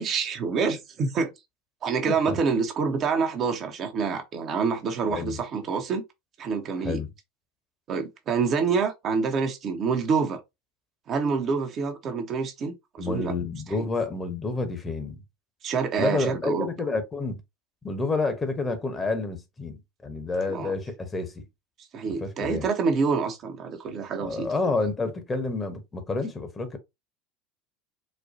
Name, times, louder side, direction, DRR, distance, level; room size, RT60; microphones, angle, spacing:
voice 1, 0.0-1.3 1.8-6.0 6.4-7.0 7.9-10.4 11.1-13.3 13.8-13.9 15.6-16.7 20.5-20.7 21.9-24.5, right 5 dB, 45° right, 0.8 m, -27 dB
voice 2, 6.8-7.1 13.0-15.2 16.0-17.4 17.8-21.4 22.1-22.7 24.2-26.8, left 3 dB, 20° left, 1.0 m, -29 dB
4.2 x 2.2 x 2.7 m
hypercardioid pair, 80°, 0 cm